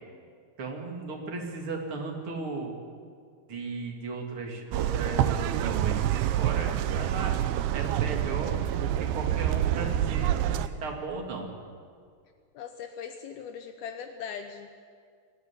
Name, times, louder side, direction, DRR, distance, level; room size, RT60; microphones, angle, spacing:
voice 1, 0.6-2.7 3.5-7.4 7.7-11.5, right 3 dB, 35° right, 1 dB, 2.8 m, -36 dB
sound 1, 4.7-10.7, right 11 dB, 85° right, 2.3 m, -27 dB
voice 2, 12.5-14.7, left 7 dB, 75° left, 7 dB, 2.4 m, -40 dB
22.5 x 15.5 x 9.9 m, 2.1 s
omnidirectional pair, 5.2 m